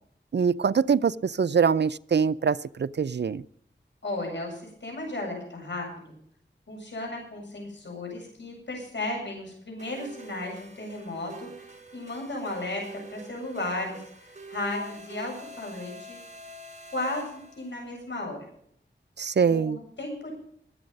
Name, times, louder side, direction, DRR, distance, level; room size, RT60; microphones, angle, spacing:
voice 1, 0.3-3.4 19.2-19.8, right 6 dB, 65° right, 0.5 m, -24 dB
voice 2, 4.0-6.1 6.7-12.8 13.1-14.0 14.5-16.2 16.9-18.4 19.4-20.3, left 2 dB, 70° left, 7.8 m, -34 dB
sound 1, 9.8-17.9, right 2 dB, 40° right, 3.6 m, -46 dB
21.5 x 8.6 x 5.3 m
wide cardioid pair, 60°, 19 cm